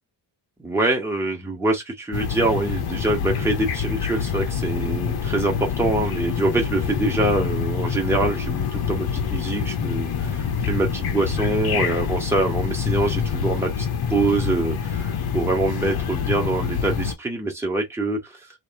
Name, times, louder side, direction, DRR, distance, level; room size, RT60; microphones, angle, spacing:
voice 1, 0.6-18.4, right 2 dB, 5° right, 1.2 m, -25 dB
sound 1, 2.1-17.1, left 7 dB, 65° left, 1.0 m, -26 dB
3.1 x 2.8 x 4.0 m
wide cardioid pair, 175°, 40 cm